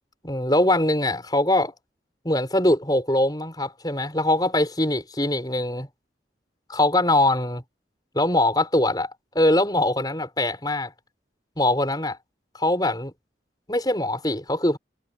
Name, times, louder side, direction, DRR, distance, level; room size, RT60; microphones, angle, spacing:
voice 1, 0.2-1.7 2.2-5.9 6.7-7.6 8.1-10.9 11.6-12.2 12.5-13.1 13.7-14.8, left 1 dB, 20° left, 6.0 m, -22 dB
head